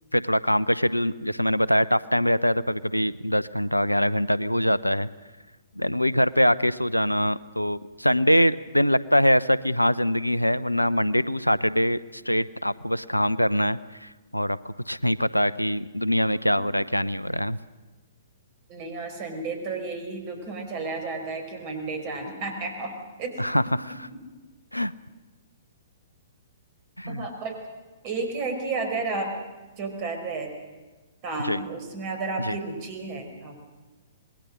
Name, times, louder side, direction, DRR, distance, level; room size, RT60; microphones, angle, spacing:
voice 1, 0.1-5.1 5.8-17.6 23.4-23.9 24.7-24.9 27.0-27.3 31.4-31.6 32.4-32.6, equal, 90° left, 18 dB, 0.7 m, -23 dB
voice 2, 18.7-23.3 27.1-27.5 28.0-29.3 29.8-30.5 31.2-33.6, right 3 dB, 35° right, 5 dB, 5.3 m, -32 dB
27.0 x 20.5 x 6.5 m, 1.3 s
figure-of-eight pair, 115°, 0 cm